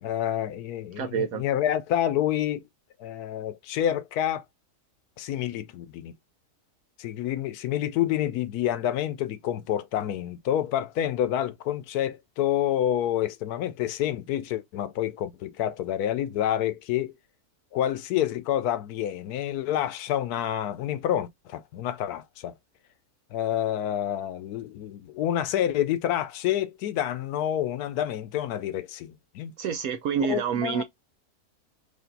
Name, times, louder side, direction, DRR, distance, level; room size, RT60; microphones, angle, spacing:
voice 1, 0.0-2.6 3.0-4.4 5.2-6.1 7.0-17.2 17.7-22.5 23.3-29.5 30.2-30.8, left 11 dB, 80° left, 1.2 m, -28 dB
voice 2, 1.0-1.4 29.6-30.8, right 7 dB, 70° right, 1.0 m, -28 dB
5.1 x 2.7 x 3.9 m
omnidirectional pair, 1.6 m